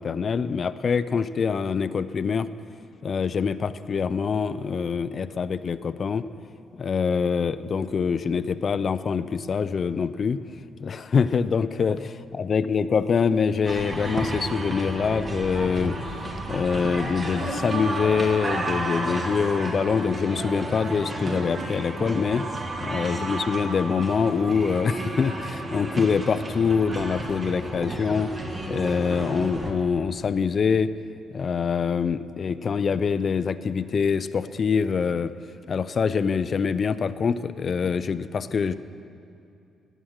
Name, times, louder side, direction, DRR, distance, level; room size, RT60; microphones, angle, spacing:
voice 1, 0.0-2.5 3.0-6.3 6.8-10.4 10.8-22.5 22.8-28.3 28.7-30.9 31.3-35.3 35.7-38.7, left 6 dB, 45° left, 14 dB, 0.4 m, -25 dB
sound 1, 13.6-29.7, right 1 dB, 30° right, 1.4 m, -31 dB
11.5 x 9.2 x 6.4 m, 2.6 s
cardioid pair, 90°, 0 cm